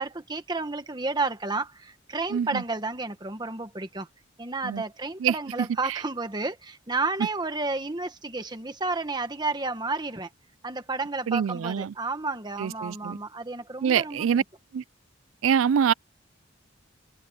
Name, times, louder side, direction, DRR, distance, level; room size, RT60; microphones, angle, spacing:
voice 1, 0.0-4.1 4.4-10.3 10.6-14.4, right 3 dB, 20° right, 1.3 m, -31 dB
voice 2, 2.3-2.6 4.6-4.8 5.2-6.0 7.2-7.3 11.3-11.9 12.6-13.2 13.8-14.4 14.7-14.8 15.4-15.9, right 8 dB, 90° right, 0.4 m, -25 dB
head